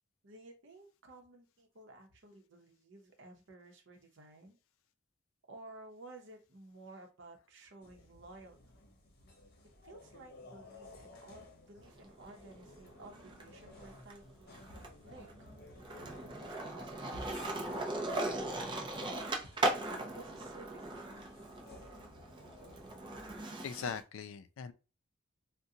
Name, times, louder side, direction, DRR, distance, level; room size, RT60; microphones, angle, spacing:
voice 1, 0.2-4.6 5.5-8.8 9.8-14.5 15.0-15.6 16.2-17.5 18.2-18.4 18.9-21.4, right 2 dB, 65° right, 0.8 m, -55 dB
sound 1, 7.8-23.4, left 1 dB, 55° left, 0.8 m, -56 dB
Skateboard, 11.8-13.4 13.8-24.0, right 2 dB, 25° right, 0.6 m, -39 dB
voice 2, 23.6-24.7, left 6 dB, 80° left, 0.4 m, -40 dB
3.7 x 2.2 x 2.7 m
head